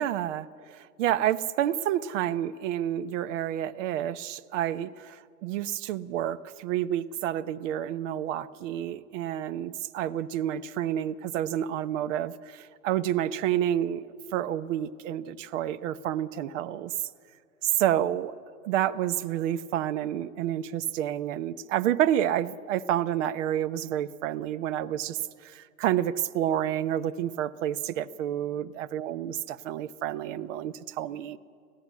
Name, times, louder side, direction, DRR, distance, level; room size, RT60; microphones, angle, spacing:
voice 1, 0.0-14.1 14.3-16.9 17.6-18.3 18.6-31.4, right 11 dB, 50° right, 14 dB, 1.0 m, -29 dB
26.0 x 16.5 x 8.4 m, 2.2 s
hypercardioid pair, 125°, 47 cm